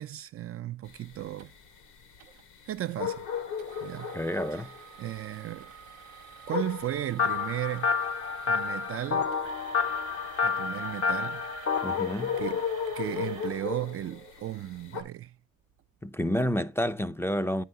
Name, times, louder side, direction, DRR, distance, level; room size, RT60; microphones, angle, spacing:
voice 1, 0.0-1.5 2.7-3.3 3.8-4.2 4.5-4.7 5.0-5.7 6.5-8.0 8.5-9.3 10.4-11.4 12.4-12.7 12.9-15.4, right 13 dB, 50° right, 0.4 m, -35 dB
sound 1, 0.9-15.0, left 7 dB, 80° left, 1.8 m, -37 dB
sound 2, 1.4-1.5 2.2-2.4 3.6-14.4 15.0-15.1 15.7-15.8, right 9 dB, 80° right, 0.7 m, -49 dB
voice 2, 4.1-4.7 11.8-12.4 16.0-17.6, left 1 dB, 10° left, 0.5 m, -29 dB
sound 3, 7.2-12.0, left 5 dB, 50° left, 0.7 m, -29 dB
9.0 x 5.7 x 3.7 m
cardioid pair, 90°, 30 cm